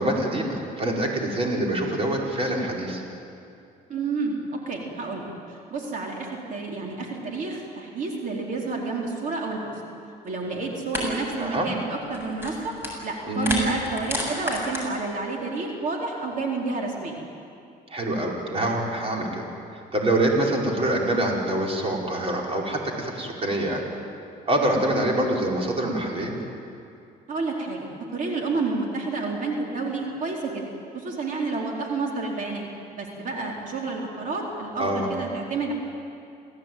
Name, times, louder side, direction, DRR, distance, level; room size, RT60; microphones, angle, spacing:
voice 1, 0.0-3.0 11.4-11.7 13.3-13.5 17.9-19.4 19.9-23.8 24.5-26.3 34.8-35.1, right 1 dB, 35° right, -1 dB, 4.9 m, -25 dB
voice 2, 3.9-9.7 10.2-12.7 13.0-17.1 27.3-30.6 30.9-32.7 33.0-35.7, right 3 dB, 50° right, 0 dB, 4.1 m, -30 dB
Stick cracks, 10.3-10.4 10.9-11.1 11.3-11.6 12.0-13.1 13.3-14.8, left 1 dB, 15° right, 7.6 m, -30 dB
28.0 x 16.5 x 9.3 m, 2.5 s
cardioid pair, 110°, 17 cm